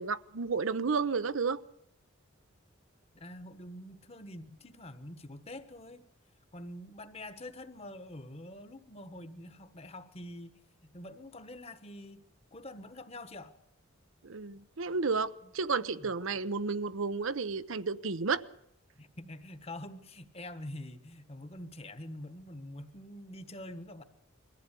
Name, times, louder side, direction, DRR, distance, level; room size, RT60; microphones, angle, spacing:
voice 1, 0.0-1.6 14.2-18.4, right 4 dB, 80° right, 0.8 m, -32 dB
voice 2, 3.1-6.0 6.5-12.2 12.5-13.5 15.4-15.5 15.9-16.1 19.0-24.0, left 1 dB, 30° left, 1.2 m, -46 dB
21.5 x 14.5 x 8.3 m
head